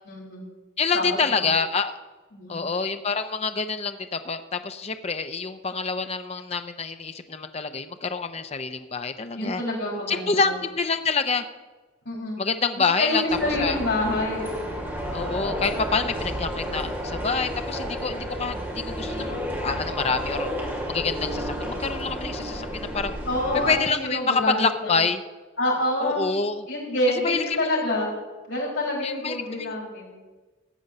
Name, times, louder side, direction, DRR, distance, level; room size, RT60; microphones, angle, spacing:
voice 1, 0.0-0.4 0.9-1.4 2.3-2.6 9.3-10.5 12.0-12.4 13.0-14.8 23.3-23.7 24.0-25.0 25.6-26.2 26.7-28.1 28.5-30.1, left 1 dB, 65° left, -6 dB, 5.0 m, -27 dB
voice 2, 0.8-1.9 2.5-9.6 10.1-11.4 12.4-13.2 13.6-13.8 15.1-20.5 20.9-23.1 23.7-25.2 26.0-26.7 27.2-27.8 29.0-29.8, left 4 dB, 30° left, 8 dB, 0.6 m, -27 dB
sound 1, 13.3-23.8, equal, 10° right, 2.2 m, -31 dB
15.0 x 5.3 x 9.0 m, 1.2 s
head